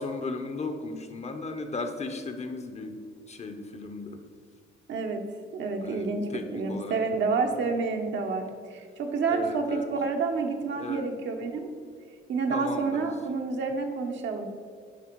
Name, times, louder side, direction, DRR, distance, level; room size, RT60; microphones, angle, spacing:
voice 1, 0.0-3.0 3.3-4.2 5.8-7.0 7.7-7.8 9.3-9.9 10.8-11.1 12.5-13.1, left 3 dB, 35° left, 7 dB, 0.8 m, -36 dB
voice 2, 4.9-5.2 5.5-11.6 12.3-14.5, right 4 dB, 70° right, 4 dB, 1.0 m, -29 dB
10.0 x 3.5 x 4.6 m, 2.1 s
cardioid pair, 90°, 20 cm